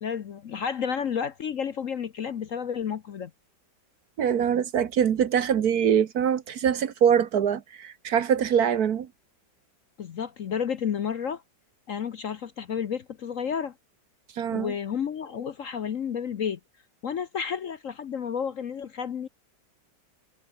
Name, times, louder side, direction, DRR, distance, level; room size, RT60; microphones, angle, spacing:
voice 1, 0.0-3.3 10.0-11.4 11.9-13.7 14.5-16.6 17.0-19.3, left 7 dB, 55° left, 1.0 m, -31 dB
voice 2, 4.2-9.1 14.4-14.7, right 8 dB, 60° right, 1.4 m, -23 dB
omnidirectional pair, 2.0 m